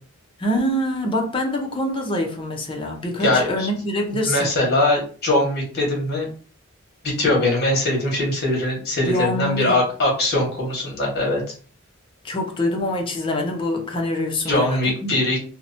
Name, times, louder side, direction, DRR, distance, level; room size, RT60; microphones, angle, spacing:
voice 1, 0.4-4.6 9.1-9.8 12.2-15.2, left 1 dB, 25° left, 0.5 m, -25 dB
voice 2, 3.2-3.7 4.1-6.3 7.0-11.4 14.5-15.4, left 1 dB, 50° left, 1.2 m, -21 dB
2.8 x 2.1 x 2.5 m
head